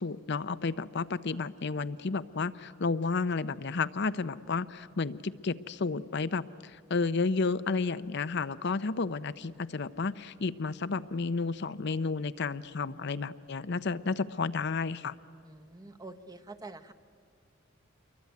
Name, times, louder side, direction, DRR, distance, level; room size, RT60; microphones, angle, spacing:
voice 1, 0.0-15.1, left 4 dB, 55° left, 13 dB, 0.7 m, -32 dB
voice 2, 15.4-16.9, right 2 dB, 20° right, 9 dB, 1.1 m, -46 dB
27.5 x 23.0 x 9.4 m, 2.3 s
head